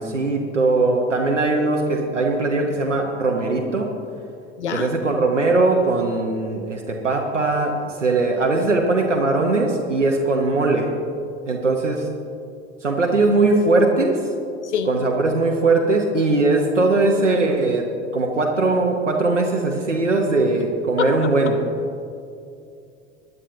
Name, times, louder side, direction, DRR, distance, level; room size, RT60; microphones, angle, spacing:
voice 1, 0.0-4.0 4.7-10.9 11.4-12.1 12.8-14.3 14.9-21.6, right 3 dB, 85° right, 1 dB, 1.1 m, -20 dB
voice 2, 4.6-4.9 14.6-14.9 21.0-21.3, left 7 dB, 70° left, 8 dB, 1.0 m, -25 dB
20.5 x 11.0 x 2.8 m, 2.5 s
figure-of-eight pair, 75°, 36 cm